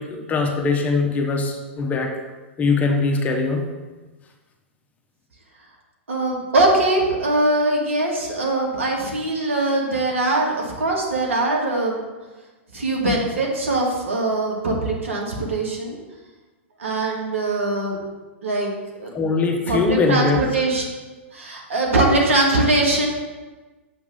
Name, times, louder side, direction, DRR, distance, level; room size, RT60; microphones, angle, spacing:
voice 1, 0.0-2.1 2.6-3.6 19.1-20.4, left 4 dB, 20° left, 2 dB, 1.0 m, -21 dB
voice 2, 6.1-12.0 12.7-16.0 16.8-18.0 18.4-18.7 19.0-19.1 19.4-20.8 21.3-23.1, right 2 dB, 80° right, -1 dB, 1.8 m, -22 dB
7.2 x 3.5 x 6.4 m, 1.2 s
hypercardioid pair, 110°, 7 cm